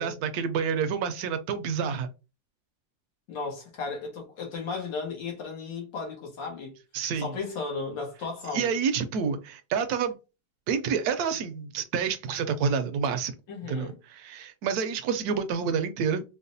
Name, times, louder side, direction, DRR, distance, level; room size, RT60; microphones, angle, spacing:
voice 1, 0.0-2.1 6.9-7.3 8.5-10.2 10.7-13.3 13.7-16.2, right 6 dB, 70° right, 0.9 m, -28 dB
voice 2, 3.3-6.8 7.2-8.7 13.5-13.9, left 4 dB, 85° left, 1.8 m, -35 dB
4.7 x 2.1 x 2.6 m
omnidirectional pair, 1.9 m